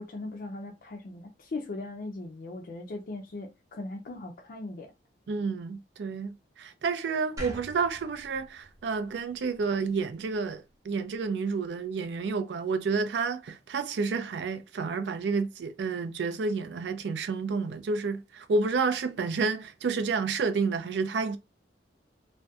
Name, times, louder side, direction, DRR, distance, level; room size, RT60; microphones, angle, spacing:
voice 1, 0.0-4.9, left 2 dB, 50° left, 0.4 m, -39 dB
voice 2, 5.3-21.4, right 4 dB, 75° right, 0.4 m, -30 dB
sound 1, 7.4-10.5, right 1 dB, 20° right, 0.6 m, -45 dB
2.6 x 2.1 x 2.2 m
head